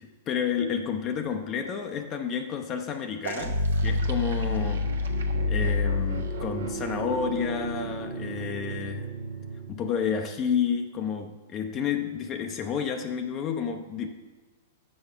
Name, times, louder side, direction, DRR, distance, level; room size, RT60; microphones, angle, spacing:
voice 1, 0.0-4.9 5.5-9.1 9.7-14.1, left 7 dB, 30° left, 5 dB, 0.5 m, -30 dB
sound 1, 3.2-9.9, left 1 dB, 70° right, 0.8 m, -29 dB
6.4 x 4.7 x 5.7 m, 1.3 s
figure-of-eight pair, 100°, 0 cm